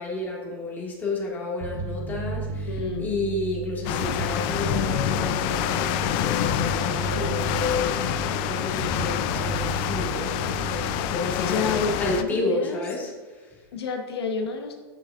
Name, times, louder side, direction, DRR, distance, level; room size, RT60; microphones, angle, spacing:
voice 1, 0.0-2.7 3.0-13.6, left 2 dB, 15° left, -4 dB, 1.8 m, -31 dB
Bass guitar, 1.6-11.2, right 3 dB, 40° right, 1.1 m, -33 dB
voice 2, 2.7-3.1 7.1-7.5 10.9-12.8 13.7-14.7, left 4 dB, 90° left, 3 dB, 1.1 m, -30 dB
sound 1, 3.8-12.2, left 11 dB, 40° left, 0.4 m, -27 dB
9.5 x 6.2 x 2.4 m, 1.4 s
supercardioid pair, 140°, 13 cm